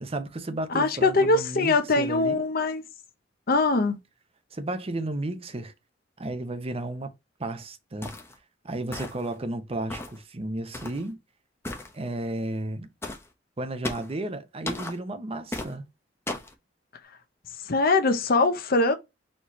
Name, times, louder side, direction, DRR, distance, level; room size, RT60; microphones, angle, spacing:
voice 1, 0.0-2.4 4.5-5.7 6.2-7.1 7.4-8.1 8.6-11.2 11.9-12.9 13.6-15.9, right 2 dB, 35° right, 0.7 m, -33 dB
voice 2, 0.7-2.8 3.5-4.0 17.7-19.0, left 3 dB, 55° left, 0.8 m, -22 dB
sound 1, 8.0-8.3 8.9-9.3 9.9-10.2 10.7-11.0 11.6-11.9 13.0-13.3 13.8-14.1 14.7-15.0 15.5-15.7 16.3-16.5, left 2 dB, 15° left, 0.8 m, -35 dB
4.3 x 2.9 x 3.1 m
head